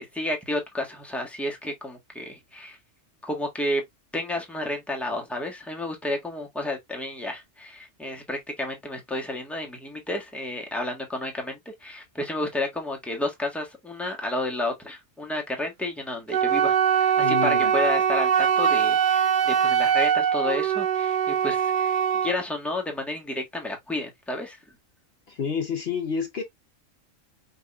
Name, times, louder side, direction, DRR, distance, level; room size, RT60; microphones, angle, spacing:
voice 1, 0.0-2.8 3.2-3.8 4.1-24.6, left 1 dB, ahead, 1.3 m, -31 dB
Wind instrument woodwind instrument, 16.3-22.4, right 8 dB, 50° right, 0.6 m, -22 dB
voice 2, 17.2-17.7 25.3-26.4, left 6 dB, 55° left, 1.0 m, -29 dB
5.4 x 3.6 x 2.4 m
omnidirectional pair, 1.3 m